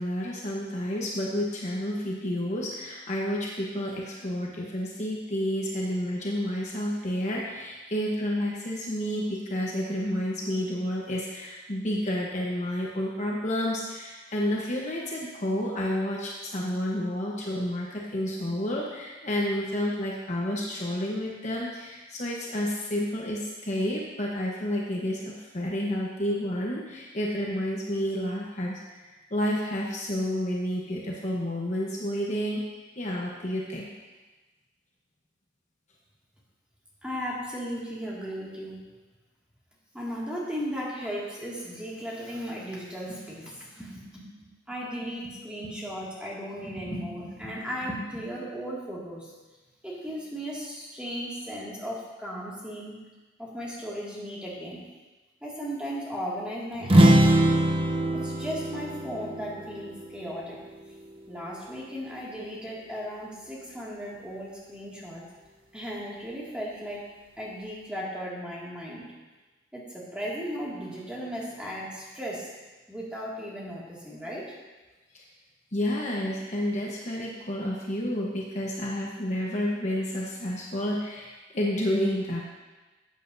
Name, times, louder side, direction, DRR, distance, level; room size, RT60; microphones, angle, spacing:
voice 1, 0.0-32.6 33.0-33.9 75.1-75.2 75.7-82.4, equal, 40° left, -3 dB, 1.1 m, -30 dB
voice 2, 37.0-38.8 39.9-49.3 49.8-53.0 53.4-54.8 55.4-57.6 58.1-60.6 61.3-65.2 65.7-67.0 67.4-69.1 69.7-72.5 72.9-74.5, equal, 5° right, -7 dB, 2.2 m, -36 dB
sound 1, 56.8-60.6, right 1 dB, 30° right, 0.7 m, -22 dB
13.5 x 8.3 x 2.7 m, 1.2 s
head